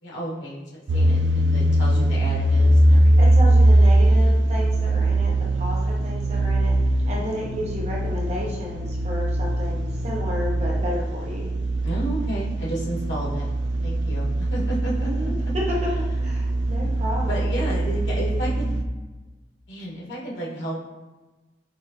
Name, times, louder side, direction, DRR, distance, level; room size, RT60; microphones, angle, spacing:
voice 1, 0.0-3.4 11.8-15.1 15.4-15.5 16.1-16.3 16.8-16.9 17.2-18.8 19.7-20.8, right 1 dB, 90° left, -5 dB, 1.2 m, -32 dB
sound 1, 0.9-18.8, right 1 dB, 80° right, 0.4 m, -21 dB
voice 2, 3.2-6.7 7.1-11.5 15.0-15.3 16.2-17.5, equal, 40° right, -4 dB, 0.8 m, -32 dB
4.6 x 2.7 x 2.7 m, 1.2 s
head